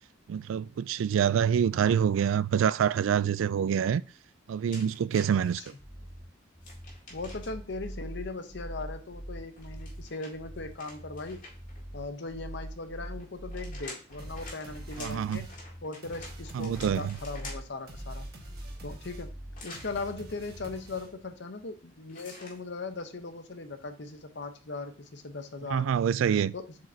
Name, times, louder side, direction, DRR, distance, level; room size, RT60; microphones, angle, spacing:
voice 1, 0.3-4.0 4.5-5.6 15.0-15.4 16.5-17.2 25.7-26.5, right 8 dB, 75° right, 0.3 m, -26 dB
sound 1, 4.7-5.7 6.6-7.7 9.5-11.8 13.2-17.8 19.5-19.9 22.1-22.6, left 2 dB, 40° left, 2.1 m, -48 dB
voice 2, 5.3-5.6 7.1-11.5 11.9-18.3 18.8-19.3 19.6-25.9 26.5-26.9, left 3 dB, 60° left, 0.8 m, -39 dB
sound 2, 5.8-20.8, equal, ahead, 0.9 m, -43 dB
sound 3, 14.2-21.4, right 1 dB, 50° right, 1.5 m, -51 dB
7.4 x 4.8 x 2.7 m
head